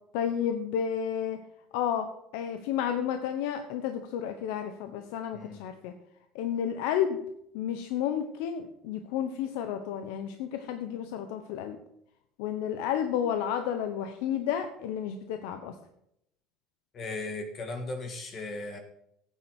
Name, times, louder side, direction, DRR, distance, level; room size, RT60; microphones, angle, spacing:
voice 1, 0.1-1.4 1.7-2.1 2.3-5.9 6.3-7.2 7.5-11.8 12.4-15.8, left 9 dB, 90° left, 7 dB, 1.1 m, -31 dB
voice 2, 16.9-18.8, left 2 dB, 30° left, 6 dB, 1.6 m, -37 dB
15.0 x 9.4 x 4.6 m, 0.78 s
cardioid pair, 175°, 0 cm